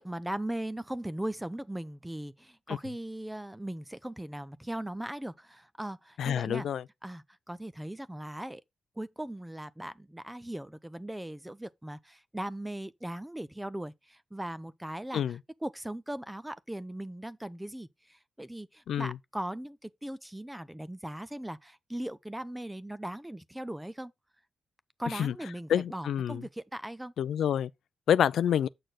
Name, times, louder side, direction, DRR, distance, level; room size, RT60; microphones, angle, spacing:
voice 1, 0.0-6.7 7.0-8.6 9.0-24.1 25.0-27.1, right 1 dB, 5° right, 0.4 m, -39 dB
voice 2, 6.2-6.8 15.1-15.4 18.9-19.2 25.1-25.3 25.7-26.4 27.2-27.7 28.1-28.7, left 9 dB, 85° left, 0.4 m, -27 dB
7.8 x 6.3 x 4.0 m
cardioid pair, 100°, 0 cm